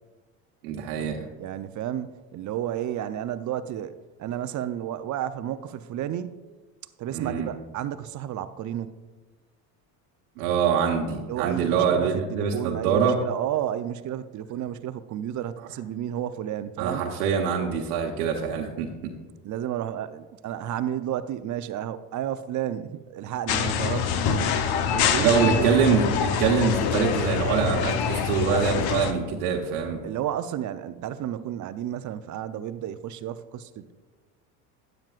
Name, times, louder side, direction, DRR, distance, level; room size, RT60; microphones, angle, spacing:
voice 1, 0.6-1.2 7.1-7.5 10.4-13.2 16.8-18.9 25.2-30.0, right 6 dB, 80° right, 0 dB, 1.2 m, -24 dB
voice 2, 1.4-3.9 4.2-6.4 7.0-9.0 11.2-17.1 19.4-24.5 24.9-25.7 30.0-33.9, right 11 dB, 45° right, 12 dB, 0.7 m, -31 dB
sound 1, 23.5-29.1, left 7 dB, 60° left, 0.9 m, -25 dB
12.5 x 9.2 x 2.5 m, 1.3 s
supercardioid pair, 85°, 43 cm